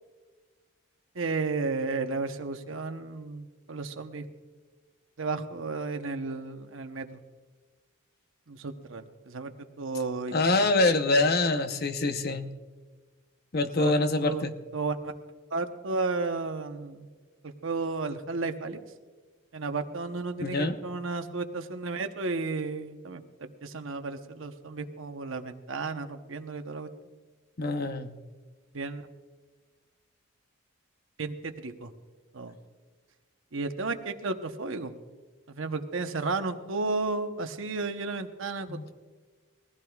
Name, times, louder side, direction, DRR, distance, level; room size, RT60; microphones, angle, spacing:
voice 1, 1.1-4.3 5.2-7.2 8.5-9.5 9.8-10.6 13.8-13.9 14.2-14.4 14.7-15.1 15.5-17.1 17.4-18.8 19.5-26.9 28.7-29.0 31.2-31.9 32.3-32.5 33.5-34.9 35.5-38.9, right 3 dB, 65° right, 7 dB, 0.9 m, -33 dB
voice 2, 10.3-12.5 13.5-14.5 20.4-20.8 27.6-28.1 38.7-38.9, left 2 dB, 45° left, 8 dB, 0.8 m, -25 dB
20.5 x 15.5 x 2.4 m, 1.4 s
head